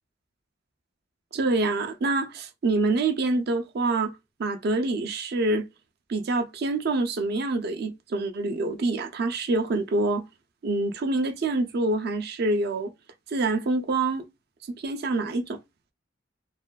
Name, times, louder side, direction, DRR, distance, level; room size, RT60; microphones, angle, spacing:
voice 1, 1.3-4.1 4.4-5.7 6.1-10.2 10.6-12.9 13.3-14.3 14.8-15.6, right 2 dB, 55° right, 0.4 m, -26 dB
2.6 x 2.2 x 2.3 m
head